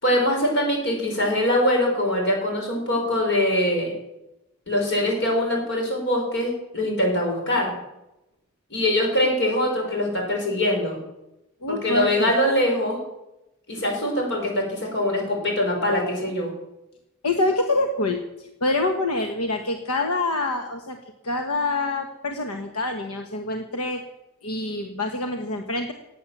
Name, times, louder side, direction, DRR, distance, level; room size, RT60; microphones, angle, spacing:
voice 1, 0.0-3.9 4.7-7.7 8.7-11.0 11.7-13.0 13.7-16.5, left 1 dB, 50° left, 1 dB, 5.3 m, -23 dB
voice 2, 11.6-12.1 17.2-21.0 21.2-24.0 24.4-25.9, left 2 dB, 80° left, 5 dB, 1.3 m, -26 dB
18.5 x 8.5 x 7.4 m, 0.93 s
head